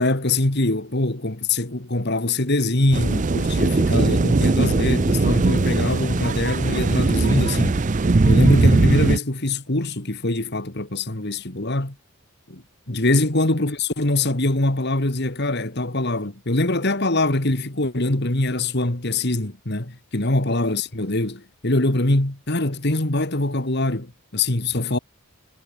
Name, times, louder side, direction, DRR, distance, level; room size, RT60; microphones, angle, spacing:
voice 1, 0.0-7.8 8.2-12.0 12.5-25.0, left 2 dB, 50° left, 2.1 m, -23 dB
sound 1, 2.9-9.2, right 3 dB, 35° right, 0.5 m, -19 dB
head